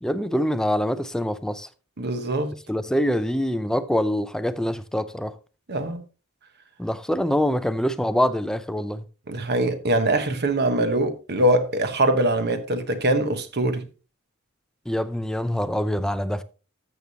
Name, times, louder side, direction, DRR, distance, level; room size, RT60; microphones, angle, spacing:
voice 1, 0.0-1.7 2.7-5.3 6.8-9.0 14.9-16.4, equal, 5° left, 0.4 m, -25 dB
voice 2, 2.0-2.5 5.7-6.0 9.3-13.8, right 1 dB, 50° right, 1.2 m, -23 dB
12.5 x 7.1 x 2.8 m
head